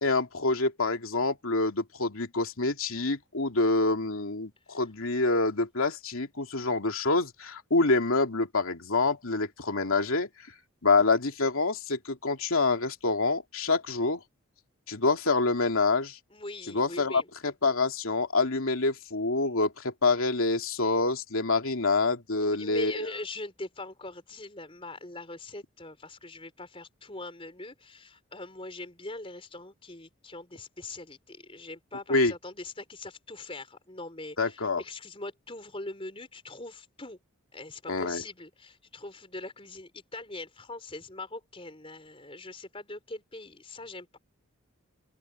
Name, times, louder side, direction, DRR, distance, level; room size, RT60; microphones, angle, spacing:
voice 1, 0.0-10.3 10.8-14.2 14.9-16.2 16.7-23.1 32.1-32.3 34.4-34.8 37.9-38.2, left 3 dB, 75° left, 2.8 m, -26 dB
voice 2, 16.3-17.3 22.4-37.2 37.5-44.2, left 2 dB, 25° left, 4.4 m, -42 dB
open air
head